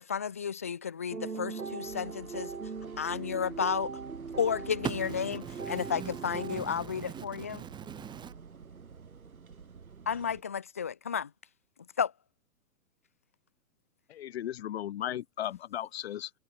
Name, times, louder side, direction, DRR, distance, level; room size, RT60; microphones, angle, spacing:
voice 1, 0.0-2.5 3.0-3.9 4.4-5.4 5.7-7.6 10.1-11.3 12.0-12.1, left 7 dB, 10° left, 0.4 m, -32 dB
sound 1, 1.1-6.6, right 5 dB, 85° right, 1.4 m, -40 dB
sound 2, 1.8-10.4, right 5 dB, 70° right, 6.1 m, -49 dB
voice 2, 4.8-7.2 7.5-8.3, right 8 dB, 10° right, 1.1 m, -41 dB
voice 3, 14.1-16.3, left 11 dB, 45° left, 1.0 m, -36 dB
figure-of-eight pair, 120°, 44 cm